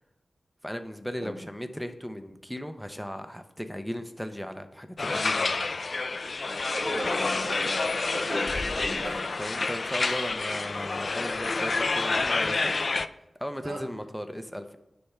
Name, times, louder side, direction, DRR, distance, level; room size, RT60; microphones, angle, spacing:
voice 1, 0.6-5.6 8.3-8.4 9.4-12.8 13.4-14.8, equal, ahead, 8 dB, 0.6 m, -36 dB
sound 1, 5.0-13.1, left 3 dB, 55° left, 0.3 m, -28 dB
voice 2, 6.5-9.3 13.6-13.8, right 1 dB, 85° right, -2 dB, 2.2 m, -36 dB
9.8 x 3.5 x 5.6 m, 0.90 s
wide cardioid pair, 70°, 0 cm